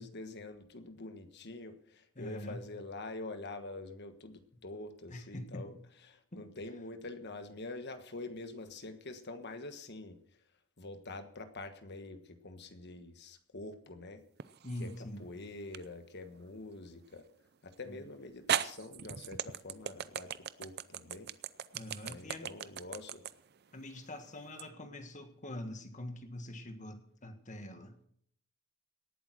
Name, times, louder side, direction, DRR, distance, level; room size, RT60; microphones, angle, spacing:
voice 1, 0.0-5.7 6.0-10.2 10.8-14.2 14.8-14.9 15.2-17.3 17.6-21.3 22.0-23.2, left 2 dB, 50° left, 9 dB, 1.4 m, -46 dB
voice 2, 2.1-2.6 5.1-5.7 6.3-6.4 14.6-15.3 17.8-18.0 21.7-22.5 23.7-28.0, left 1 dB, 35° left, 7 dB, 1.7 m, -44 dB
sound 1, 14.4-15.0 15.7-15.9 17.7-17.8 18.5-24.7, right 9 dB, 50° right, 0.5 m, -37 dB
18.5 x 8.6 x 6.2 m, 0.65 s
head